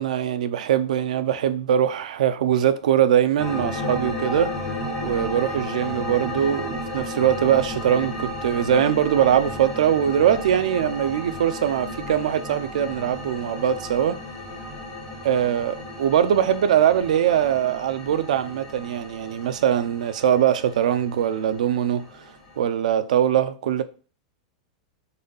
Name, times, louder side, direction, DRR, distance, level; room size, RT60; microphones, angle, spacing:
voice 1, 0.0-4.5 5.0-14.2 15.2-22.1 22.6-23.8, right 9 dB, 75° right, 0.6 m, -22 dB
sound 1, 3.4-22.6, left 1 dB, 10° left, 1.7 m, -34 dB
4.7 x 4.2 x 5.3 m
supercardioid pair, 170°, 4 cm